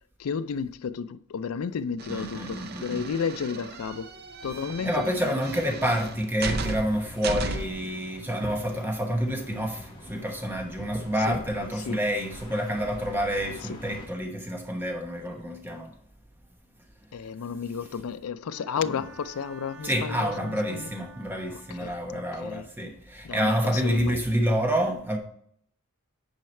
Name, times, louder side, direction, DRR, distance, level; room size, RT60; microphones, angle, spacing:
voice 1, 0.2-4.1 4.4-5.4 11.3-11.4 11.9-12.0 13.7-13.8 17.1-20.9 21.5-22.7 23.2-24.2, left 6 dB, 90° left, 0.4 m, -33 dB
sound 1, 2.0-7.9, right 4 dB, 45° right, 0.5 m, -36 dB
voice 2, 2.1-3.0 4.8-15.9 19.8-25.2, equal, 10° right, 1.0 m, -28 dB
sound 2, 4.4-14.1, left 1 dB, 20° left, 1.2 m, -46 dB
Bowed string instrument, 18.5-22.2, right 5 dB, 80° right, 2.4 m, -50 dB
9.3 x 4.7 x 4.4 m
head